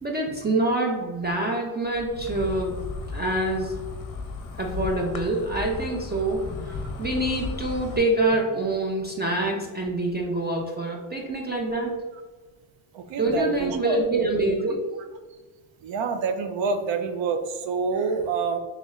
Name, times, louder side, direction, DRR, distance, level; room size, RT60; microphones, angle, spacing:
voice 1, 0.0-2.7 3.1-3.8 4.6-6.5 7.0-12.0 13.2-14.9, right 2 dB, 25° right, 0 dB, 0.4 m, -26 dB
Insect, 1.9-8.0, left 4 dB, 45° left, 0.6 m, -35 dB
voice 2, 12.9-14.0 15.8-18.6, right 5 dB, 70° right, 7 dB, 0.6 m, -27 dB
3.2 x 3.0 x 3.6 m, 1.3 s
cardioid pair, 120°, 47 cm